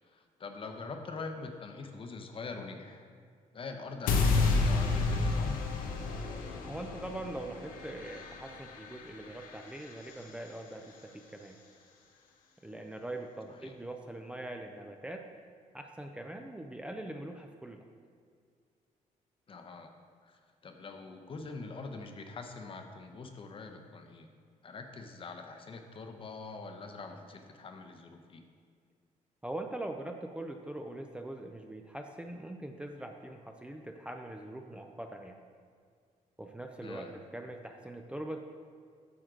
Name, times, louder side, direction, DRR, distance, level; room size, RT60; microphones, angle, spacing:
voice 1, 0.1-3.0 3.5-5.6 13.6-13.7 19.5-19.9 20.2-24.3 24.6-28.4 36.8-37.1, left 4 dB, 40° left, 5 dB, 0.8 m, -44 dB
sound 1, 4.1-10.2, left 3 dB, 90° left, 0.8 m, -31 dB
voice 2, 6.6-11.6 12.6-15.3 15.7-17.9 29.4-35.4 36.4-38.4, right 1 dB, 10° right, 3 dB, 0.4 m, -42 dB
9.5 x 6.2 x 3.8 m, 2.1 s
cardioid pair, 115°, 14 cm